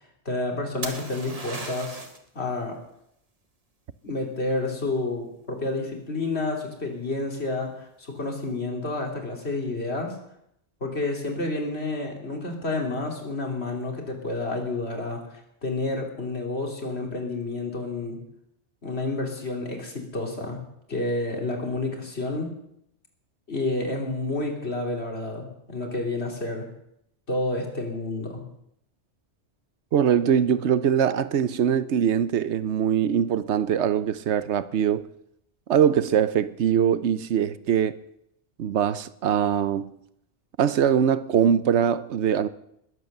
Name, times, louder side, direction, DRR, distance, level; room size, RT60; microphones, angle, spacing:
voice 1, 0.2-2.0 2.3-2.8 4.0-10.1 10.8-18.2 18.8-20.6 20.9-22.5 23.5-26.7 27.3-28.4, left 2 dB, 65° left, 3.2 m, -30 dB
sound 1, 0.8-2.3 6.0-6.4, right 2 dB, 30° right, 1.6 m, -36 dB
voice 2, 29.9-35.1 35.7-38.0 38.6-39.9 40.6-42.5, right 8 dB, 75° right, 1.0 m, -22 dB
20.5 x 8.3 x 6.7 m
omnidirectional pair, 1.2 m